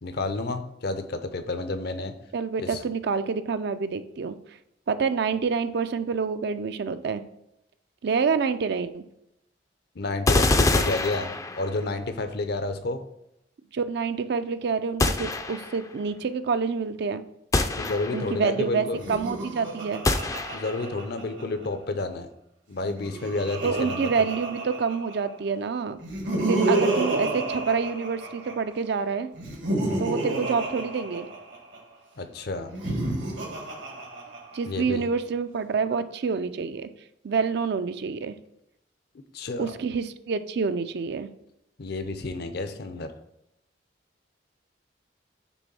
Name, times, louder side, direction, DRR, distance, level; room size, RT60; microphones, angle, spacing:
voice 1, 0.0-2.1 2.6-2.8 10.0-13.1 17.8-19.0 20.5-22.3 22.7-24.1 29.8-30.1 32.2-32.7 34.7-35.0 39.3-39.7 41.8-43.1, left 2 dB, 65° left, 9 dB, 0.6 m, -30 dB
voice 2, 2.3-4.4 4.9-7.2 8.0-9.0 13.7-17.2 18.1-20.0 23.6-26.0 26.5-29.3 30.0-31.3 34.5-36.9 37.2-38.3 39.6-41.3, right 5 dB, 65° right, 11 dB, 0.4 m, -27 dB
sound 1, 10.3-11.9 15.0-15.9 17.5-18.4 20.0-20.9, left 2 dB, 20° left, 0.4 m, -25 dB
Laughter, 18.9-21.7 22.7-25.3 26.0-28.7 29.4-31.8 32.6-34.8, right 2 dB, 80° right, 1.8 m, -30 dB
6.2 x 3.4 x 5.4 m, 0.82 s
head